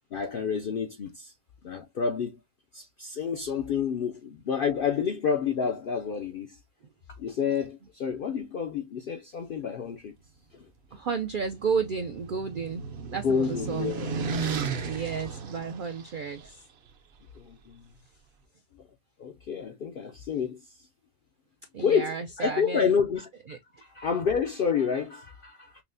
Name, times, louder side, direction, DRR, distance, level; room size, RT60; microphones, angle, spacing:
voice 1, 0.1-1.3 1.6-2.4 2.7-6.6 7.2-10.1 10.5-10.7 13.2-14.1 17.4-17.9 19.2-20.9 21.8-23.3 23.8-25.8, left 6 dB, 70° left, 0.5 m, -29 dB
voice 2, 10.9-12.8 13.1-14.0 14.8-16.6 21.7-22.9 23.5-23.6, right 5 dB, 75° right, 0.4 m, -32 dB
sound 1, 11.2-16.4, right 5 dB, 55° right, 0.8 m, -34 dB
5.8 x 2.0 x 2.5 m
omnidirectional pair, 1.4 m